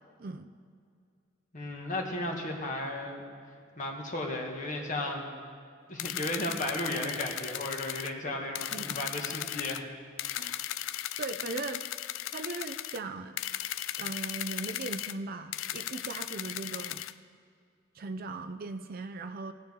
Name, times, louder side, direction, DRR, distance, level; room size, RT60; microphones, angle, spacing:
voice 1, 0.2-0.5 8.7-8.8 11.2-11.8 12.3-13.4 14.0-17.0 17.9-19.5, right 3 dB, 50° right, 8 dB, 0.4 m, -38 dB
voice 2, 1.5-3.2 3.8-5.3 5.9-9.9 10.3-10.6, left 1 dB, 40° left, 1 dB, 1.6 m, -34 dB
sound 1, 6.0-8.1 8.6-9.8 10.2-13.0 13.4-15.1 15.5-17.1, left 13 dB, 85° left, 0.4 m, -37 dB
18.0 x 10.0 x 3.7 m, 2.2 s
head